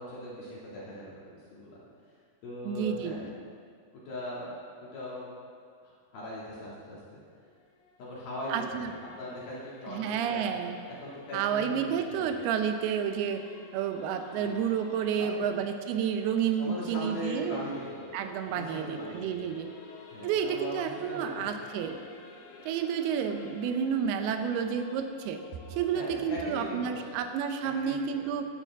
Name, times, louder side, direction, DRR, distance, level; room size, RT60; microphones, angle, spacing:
voice 1, 0.0-1.8 2.4-3.2 4.1-4.5 4.9-5.3 5.8-7.2 8.0-8.9 9.2-12.3 14.4-14.6 15.1-15.5 16.6-18.1 18.4-19.4 20.1-21.5 25.9-27.2 27.8-28.2, left 1 dB, 55° left, -7 dB, 3.8 m, -40 dB
voice 2, 2.6-3.1 8.5-8.9 9.9-10.8 11.3-13.4 13.7-17.6 18.1-19.7 20.2-22.0 22.6-25.4 25.7-28.5, right 7 dB, 80° right, 6 dB, 2.4 m, -30 dB
Singing / Musical instrument, 7.1-26.5, left 5 dB, 75° left, 3.2 m, -52 dB
15.5 x 11.5 x 3.6 m, 2.1 s
omnidirectional pair, 5.3 m